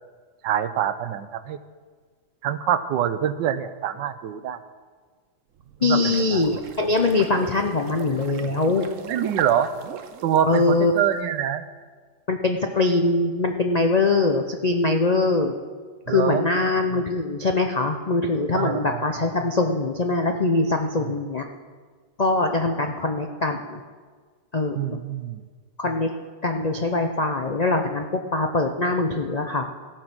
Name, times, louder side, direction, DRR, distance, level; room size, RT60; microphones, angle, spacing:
voice 1, 0.4-1.6 2.4-4.6 5.8-6.5 9.1-9.7 10.2-11.6 16.1-16.5 18.5-19.1 21.0-21.1 24.7-25.4, right 10 dB, 85° right, 12 dB, 1.4 m, -25 dB
sound 1, 5.6-11.0, right 7 dB, 55° right, 1.0 m, -37 dB
voice 2, 5.8-8.9 10.4-10.9 12.3-15.5 16.1-21.4 22.2-23.8 24.5-25.0 25.8-26.1 26.4-29.7, left 3 dB, 85° left, 4 dB, 0.3 m, -22 dB
15.0 x 9.0 x 6.1 m, 1.5 s
omnidirectional pair, 1.9 m